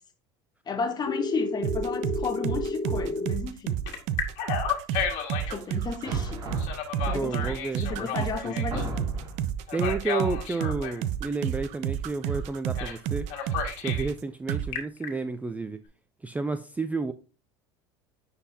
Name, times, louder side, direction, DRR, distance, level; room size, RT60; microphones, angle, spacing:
voice 1, 0.7-3.8 5.5-6.5 7.1-8.9, left 5 dB, 30° left, 1.2 m, -33 dB
Telephone, 1.1-3.3 3.9-5.6 6.6-8.8 9.7-11.0 12.8-13.0 13.3-14.1 14.5-15.1, left 6 dB, 65° left, 1.8 m, -32 dB
sound 1, 1.6-14.2 14.5-14.7, right 10 dB, 60° right, 0.6 m, -30 dB
sound 2, 6.0-7.5 8.2-8.3 8.7-9.5, right 1 dB, 30° right, 2.6 m, -34 dB
voice 2, 7.1-8.1 8.4-8.6 9.7-13.3 13.8-15.8 16.2-17.1, right 3 dB, 10° right, 0.4 m, -31 dB
9.6 x 4.1 x 2.7 m
supercardioid pair, 100°, 14 cm